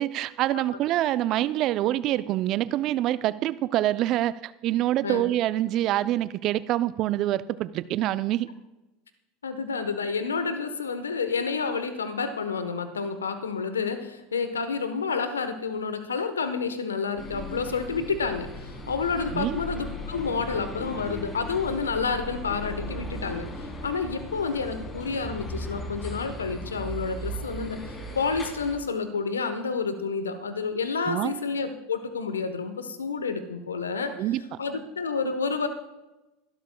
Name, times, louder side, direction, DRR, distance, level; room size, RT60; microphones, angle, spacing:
voice 1, 0.0-8.5 19.3-19.6 31.1-31.3 34.2-34.6, right 14 dB, 50° right, 15 dB, 0.6 m, -26 dB
voice 2, 9.4-23.5 23.8-27.8 28.1-34.1 34.6-35.7, left 5 dB, 85° left, 9 dB, 1.2 m, -29 dB
sound 1, 17.2-28.8, equal, 25° left, 3.6 m, -37 dB
23.5 x 12.5 x 2.3 m, 1.0 s
hypercardioid pair, 80°, 0 cm